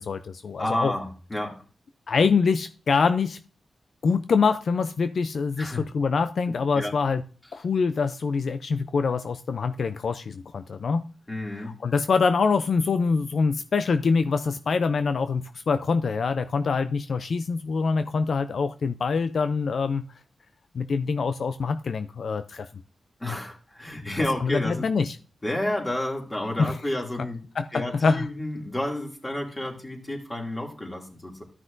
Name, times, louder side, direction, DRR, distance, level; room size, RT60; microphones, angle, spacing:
voice 1, 0.0-0.9 2.1-3.4 4.0-7.2 7.5-11.0 11.6-20.0 20.7-22.7 24.4-25.2 26.6-26.7 27.6-28.3, left 5 dB, 70° left, 10 dB, 0.4 m, -25 dB
voice 2, 0.6-1.5 5.6-5.8 6.7-6.9 11.3-11.7 23.2-24.9 25.4-27.4 27.7-31.4, left 1 dB, 20° left, 1 dB, 2.5 m, -30 dB
13.0 x 6.0 x 2.6 m, 0.38 s
cardioid pair, 60°, 0 cm